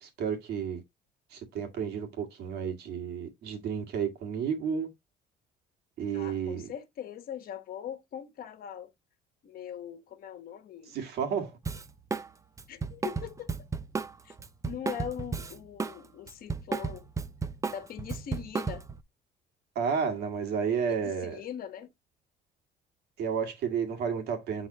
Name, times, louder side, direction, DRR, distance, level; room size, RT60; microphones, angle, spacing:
voice 1, 0.0-0.8 1.3-4.9 6.0-6.7 10.9-11.5 19.8-21.4 23.2-24.7, right 7 dB, 75° right, 2.0 m, -31 dB
voice 2, 6.1-8.9 9.4-11.0 12.7-13.5 14.2-14.3 14.6-17.1 17.7-18.9 20.9-21.9, left 9 dB, 60° left, 1.2 m, -41 dB
Drum kit, 11.6-12.3 12.6-16.0 16.3-19.0, right 4 dB, 20° right, 0.6 m, -33 dB
8.4 x 4.0 x 2.9 m
cardioid pair, 110°, 17 cm